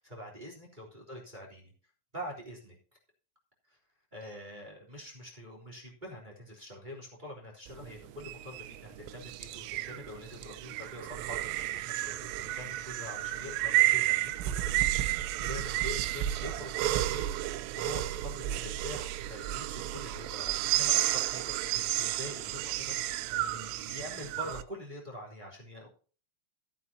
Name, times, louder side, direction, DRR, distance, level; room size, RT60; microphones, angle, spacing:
voice 1, 0.0-1.7 2.1-2.7 3.7-3.8 4.1-21.4 21.7-25.9, left 1 dB, 10° right, -1 dB, 2.8 m, -45 dB
sound 1, 7.7-24.6, right 15 dB, 90° right, 3.2 m, -32 dB
16.5 x 9.5 x 2.9 m, 0.39 s
omnidirectional pair, 5.7 m